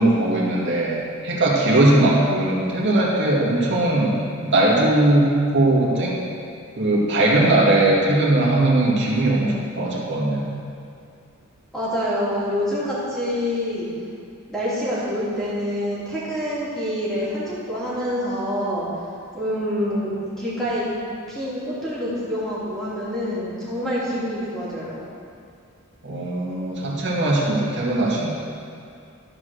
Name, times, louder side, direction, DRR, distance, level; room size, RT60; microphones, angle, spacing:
voice 1, 0.0-6.2 6.8-10.5 26.0-28.3, right 1 dB, 55° right, -4 dB, 2.0 m, -19 dB
voice 2, 11.7-13.9 14.5-18.9 19.3-20.1 20.4-20.9 21.3-24.9, equal, ahead, -10 dB, 2.8 m, -26 dB
12.0 x 5.0 x 6.4 m, 2.4 s
head